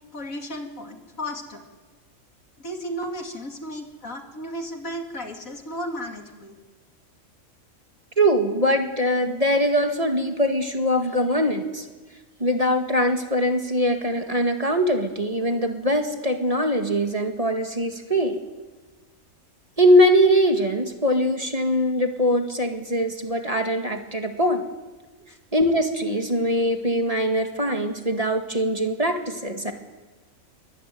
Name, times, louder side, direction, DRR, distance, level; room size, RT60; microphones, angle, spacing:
voice 1, 0.1-1.6 2.6-6.5, equal, 75° left, 3 dB, 3.2 m, -34 dB
voice 2, 8.2-11.9 12.4-18.4 19.8-24.7 25.5-29.7, equal, 25° right, 5 dB, 2.1 m, -22 dB
23.0 x 23.0 x 9.3 m, 1.3 s
omnidirectional pair, 1.4 m